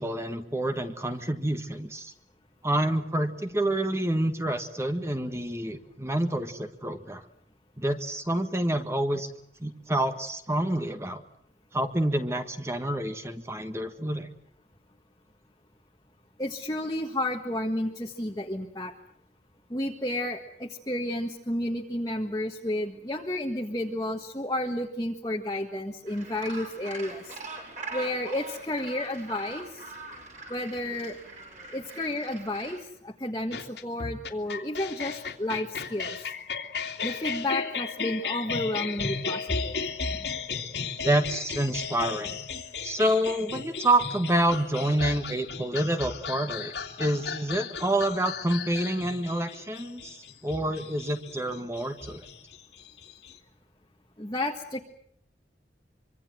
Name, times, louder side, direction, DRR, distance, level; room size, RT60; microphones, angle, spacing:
voice 1, 0.0-2.1 2.6-7.2 7.8-9.3 9.6-11.2 11.7-14.3 41.0-42.3 42.8-52.3, right 1 dB, 15° right, 7 dB, 1.6 m, -28 dB
voice 2, 16.4-18.9 19.7-27.4 27.9-29.9 30.5-31.2 31.7-36.3 37.0-39.8 40.2-40.3 54.2-54.8, left 1 dB, 20° left, 0 dB, 1.6 m, -31 dB
Gull seagull, 26.1-32.8, right 3 dB, 45° right, 7.6 m, -42 dB
sound 1, 33.5-53.3, left 5 dB, 75° left, 2.7 m, -35 dB
25.0 x 24.5 x 7.8 m, 0.69 s
head